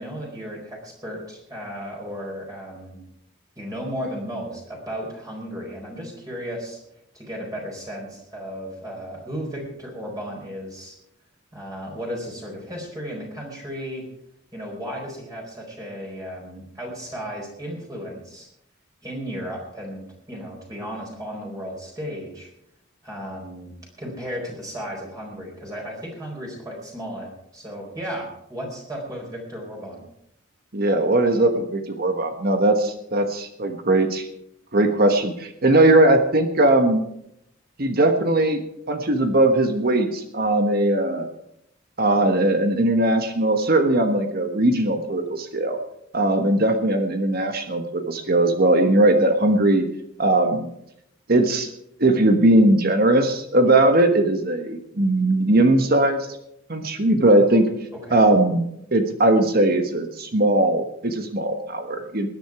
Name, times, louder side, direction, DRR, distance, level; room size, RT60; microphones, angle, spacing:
voice 1, 0.0-3.0 3.6-6.8 7.1-10.9 11.5-14.0 14.5-18.5 19.0-22.5 23.0-30.0 57.9-58.2, equal, 20° right, -2 dB, 4.2 m, -34 dB
voice 2, 30.7-34.3 34.7-37.0 37.8-38.6 38.9-41.3 42.0-45.8 46.1-49.8 50.2-50.7 51.3-51.7 52.0-56.3 56.7-57.7 58.1-58.6 58.9-62.3, right 1 dB, 50° right, 6 dB, 1.3 m, -19 dB
20.5 x 9.8 x 4.8 m, 0.77 s
head